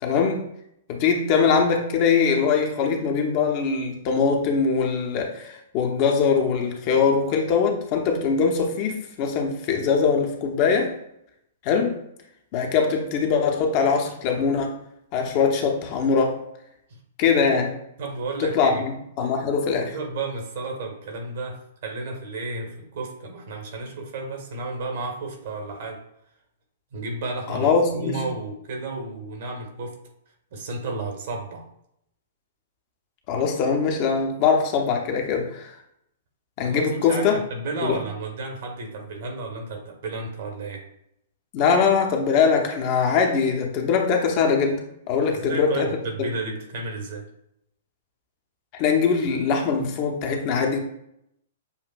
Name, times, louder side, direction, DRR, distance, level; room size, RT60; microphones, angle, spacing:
voice 1, 0.0-0.5 0.9-10.9 11.6-12.0 12.5-14.8 15.1-16.4 17.2-17.8 18.4-19.9 27.5-28.2 33.3-35.7 36.6-37.4 37.8-38.0 41.5-44.8 45.1-45.9 46.2-46.3 48.7-50.8, left 5 dB, 40° left, 3 dB, 0.8 m, -22 dB
voice 2, 18.0-18.8 19.2-19.3 19.9-26.0 26.9-30.0 30.5-31.7 36.6-40.8 45.3-47.3, right 3 dB, 55° right, 2 dB, 1.4 m, -32 dB
7.0 x 2.6 x 2.4 m, 0.75 s
figure-of-eight pair, 110°, 0 cm